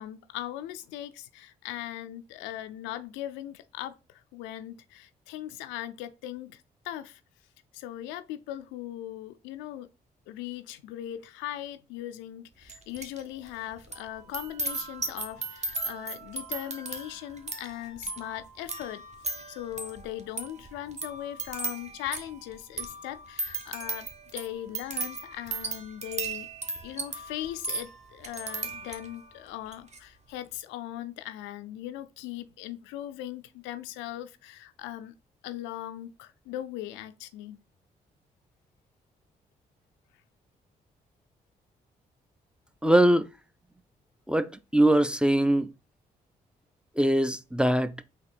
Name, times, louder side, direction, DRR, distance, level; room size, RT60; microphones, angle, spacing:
voice 1, 0.0-7.2 7.7-9.9 10.3-19.0 19.5-26.5 26.8-35.1 35.4-37.6, left 13 dB, 85° left, 0.4 m, -39 dB
sound 1, 12.7-13.2 13.5-29.2 29.7-30.0, right 3 dB, 35° right, 1.1 m, -37 dB
voice 2, 42.8-43.3 44.3-45.7 47.0-48.0, right 1 dB, 5° right, 0.4 m, -22 dB
4.1 x 2.8 x 4.2 m
hypercardioid pair, 45°, 19 cm